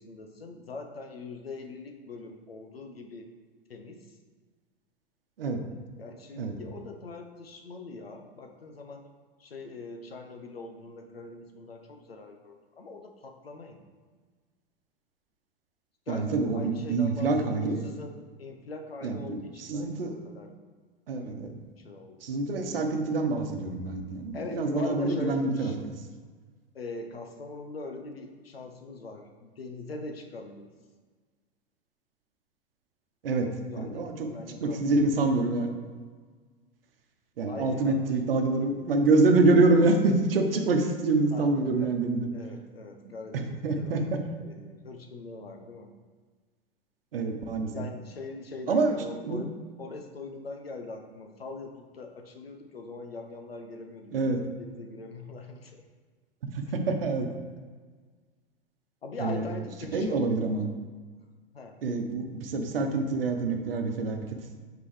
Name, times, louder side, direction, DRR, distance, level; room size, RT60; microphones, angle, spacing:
voice 1, 0.0-3.3 3.7-4.2 5.6-9.0 9.4-13.9 16.1-20.5 21.2-21.4 21.8-22.3 24.3-25.7 26.7-30.7 33.7-35.0 37.5-38.0 41.3-41.9 42.3-45.9 47.7-49.5 49.8-55.8 59.0-60.2 61.5-61.8, left 3 dB, 85° left, 4 dB, 0.9 m, -42 dB
voice 2, 16.1-17.9 19.0-20.1 21.1-21.5 22.2-25.9 33.2-33.5 33.8-34.3 34.6-35.7 37.4-42.3 43.3-44.2 47.1-47.8 48.7-49.4 54.1-54.4 56.5-57.3 59.2-59.5 59.9-60.7 61.8-64.4, right 3 dB, 75° right, 5 dB, 1.0 m, -26 dB
8.5 x 3.9 x 3.3 m, 1.5 s
hypercardioid pair, 95°, 29 cm